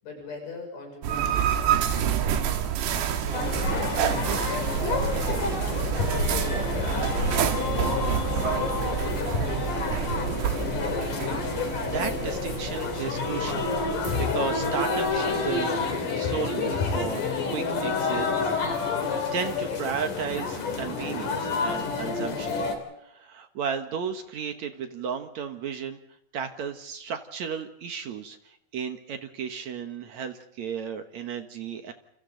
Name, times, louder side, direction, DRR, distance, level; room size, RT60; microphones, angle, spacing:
voice 1, 0.0-2.4 2.9-6.9 7.3-10.2, left 3 dB, 75° left, 1 dB, 8.7 m, -44 dB
sound 1, 1.0-15.6, right 9 dB, 85° right, 3.8 m, -29 dB
sound 2, 3.3-22.8, left 4 dB, 50° left, 4.5 m, -28 dB
voice 2, 11.8-13.7 14.2-18.8 19.3-22.6 23.0-26.0 26.3-31.9, right 6 dB, 65° right, 7 dB, 1.8 m, -34 dB
29.0 x 29.0 x 3.9 m, 0.77 s
omnidirectional pair, 4.9 m